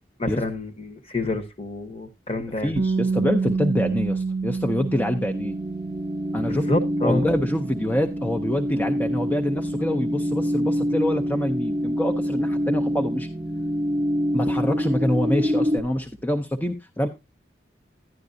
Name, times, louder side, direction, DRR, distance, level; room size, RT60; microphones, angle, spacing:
voice 1, 0.2-2.7 6.4-7.3, left 2 dB, 30° left, 1.0 m, -28 dB
voice 2, 2.6-5.6 6.3-6.7 7.0-13.3 14.3-17.1, left 1 dB, 10° left, 0.6 m, -26 dB
sound 1, 2.7-14.6, right 4 dB, 65° right, 0.6 m, -31 dB
sound 2, 5.3-15.8, equal, 25° right, 0.7 m, -26 dB
10.5 x 10.5 x 2.6 m
head